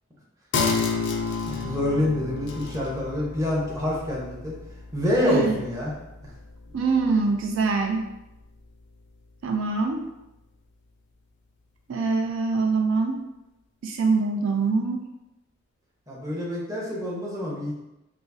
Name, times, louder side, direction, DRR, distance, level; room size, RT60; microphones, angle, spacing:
sound 1, 0.5-7.6 7.9-8.0, left 4 dB, 60° left, 0.4 m, -31 dB
voice 1, 1.5-4.6 4.9-5.9 16.1-17.8, left 1 dB, 15° right, -4 dB, 0.8 m, -27 dB
voice 2, 5.2-5.5 6.7-8.1 9.4-10.0 11.9-13.2 13.8-15.0, right 4 dB, 70° right, 3 dB, 0.3 m, -24 dB
4.8 x 2.0 x 2.6 m, 0.94 s
head